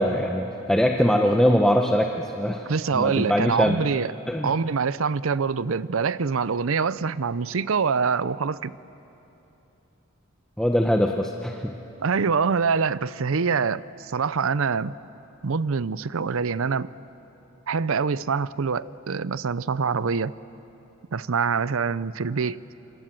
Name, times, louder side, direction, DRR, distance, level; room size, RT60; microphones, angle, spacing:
voice 1, 0.0-2.7 2.9-3.8 4.3-4.5 10.6-11.7, equal, 5° left, 2 dB, 0.9 m, -22 dB
voice 2, 2.7-4.1 4.4-8.7 12.0-14.9 15.4-16.9 17.7-20.4 21.1-22.6, right 5 dB, 70° right, 17 dB, 0.6 m, -25 dB
28.5 x 26.5 x 7.6 m, 3.0 s
head